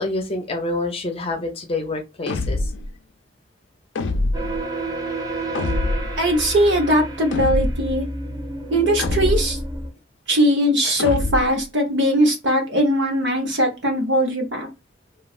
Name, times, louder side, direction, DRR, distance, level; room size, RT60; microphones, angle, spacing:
voice 1, 0.0-2.7, left 2 dB, 30° left, 0.6 m, -27 dB
sound 1, 2.3-2.9 4.0-4.6 5.5-6.2 7.3-7.9 9.0-9.7 11.0-11.6, left 2 dB, 80° left, 0.4 m, -24 dB
sound 2, 4.3-9.9, right 2 dB, 20° right, 0.5 m, -30 dB
voice 2, 6.2-8.0 8.7-9.6 10.3-14.7, equal, 75° right, 0.9 m, -20 dB
3.1 x 2.3 x 2.4 m
head